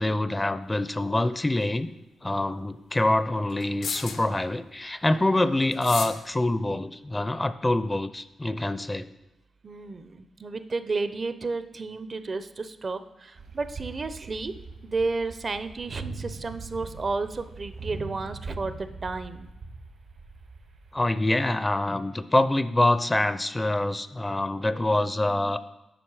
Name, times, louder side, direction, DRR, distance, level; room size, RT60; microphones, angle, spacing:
voice 1, 0.0-1.9 2.2-9.1 20.9-25.6, left 1 dB, 20° left, 13 dB, 0.4 m, -25 dB
sound 1, 1.6-1.7 3.6-4.4 5.7-6.3, left 6 dB, 75° left, 0.6 m, -33 dB
voice 2, 9.6-14.5 14.8-19.5, right 3 dB, 45° right, 11 dB, 0.6 m, -32 dB
sound 2, 13.3-21.5, right 3 dB, 75° right, 1.5 m, -41 dB
7.8 x 5.3 x 4.7 m, 0.96 s
cardioid pair, 60°, 0 cm